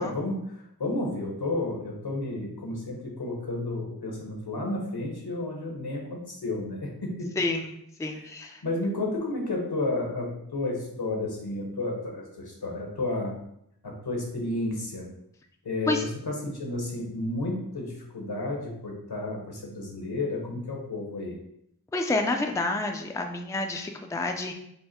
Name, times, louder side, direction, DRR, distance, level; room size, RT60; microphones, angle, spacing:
voice 1, 0.0-7.4 8.1-8.2 8.6-13.4 13.8-15.1 15.6-21.4, left 2 dB, 75° left, 1 dB, 1.2 m, -32 dB
voice 2, 8.0-8.6 15.9-16.1 21.9-24.5, left 2 dB, 10° left, 3 dB, 0.5 m, -29 dB
5.6 x 2.1 x 4.3 m, 0.75 s
wide cardioid pair, 50°, 38 cm